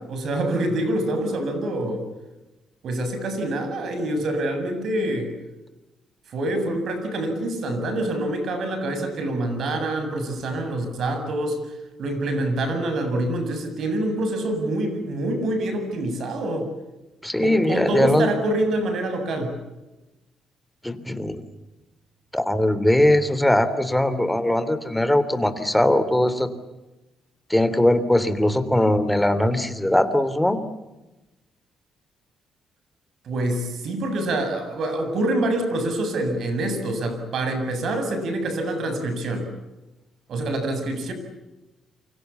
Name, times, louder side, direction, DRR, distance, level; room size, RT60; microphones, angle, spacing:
voice 1, 0.0-2.0 2.8-5.3 6.3-11.6 12.0-16.7 17.4-19.5 33.2-39.5 40.3-41.1, right 1 dB, 65° right, 7 dB, 7.8 m, -26 dB
voice 2, 17.2-18.3 20.8-21.4 22.3-26.5 27.5-30.6, left 1 dB, 5° left, 11 dB, 3.2 m, -20 dB
28.5 x 25.0 x 7.2 m, 1.0 s
cardioid pair, 90°, 0 cm